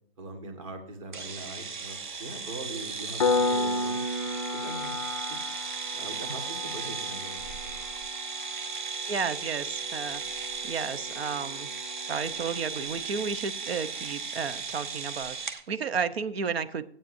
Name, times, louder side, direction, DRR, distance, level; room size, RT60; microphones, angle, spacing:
voice 1, 0.2-4.0 4.6-5.4 5.9-7.8, right 2 dB, 35° right, 4 dB, 2.0 m, -41 dB
sound 1, 1.1-15.6, right 5 dB, 50° right, 1.2 m, -36 dB
Piano, 3.2-13.6, left 3 dB, 35° left, 0.4 m, -34 dB
voice 2, 9.1-10.2 10.6-11.7 12.1-16.8, right 5 dB, 80° right, 13 dB, 1.0 m, -32 dB
15.0 x 9.0 x 2.7 m, 0.63 s
hypercardioid pair, 175°, 30 cm